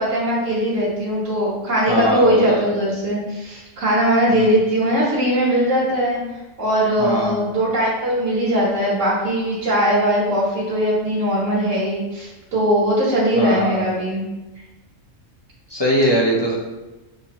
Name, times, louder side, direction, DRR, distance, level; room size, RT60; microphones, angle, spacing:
voice 1, 0.0-6.2 6.6-14.2, equal, 70° right, -8 dB, 1.6 m, -20 dB
voice 2, 1.9-2.7 4.3-4.5 7.0-7.4 13.3-13.8 15.7-16.5, equal, 35° left, -3 dB, 0.4 m, -21 dB
6.3 x 2.7 x 2.9 m, 1.1 s
omnidirectional pair, 1.4 m